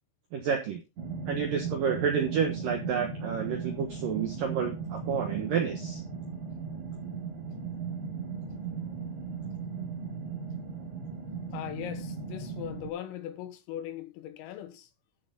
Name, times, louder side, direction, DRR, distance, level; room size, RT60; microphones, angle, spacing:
voice 1, 0.3-0.8 1.3-6.0, right 7 dB, 75° right, 2.0 m, -30 dB
sound 1, 1.0-12.9, right 5 dB, 40° right, 3.8 m, -37 dB
voice 2, 11.5-14.9, left 11 dB, 80° left, 3.9 m, -39 dB
13.0 x 6.5 x 3.9 m
omnidirectional pair, 5.9 m